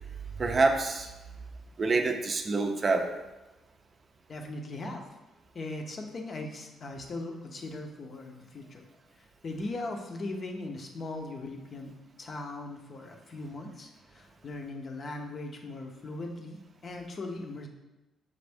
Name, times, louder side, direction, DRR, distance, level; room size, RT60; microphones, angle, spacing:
voice 1, 0.4-1.1 1.8-3.2, right 3 dB, 40° right, 5 dB, 0.4 m, -26 dB
voice 2, 4.3-5.0 5.5-8.9 9.1-17.7, left 2 dB, 45° left, 3 dB, 0.6 m, -39 dB
5.1 x 2.5 x 3.4 m, 1.0 s
cardioid pair, 90°, 0 cm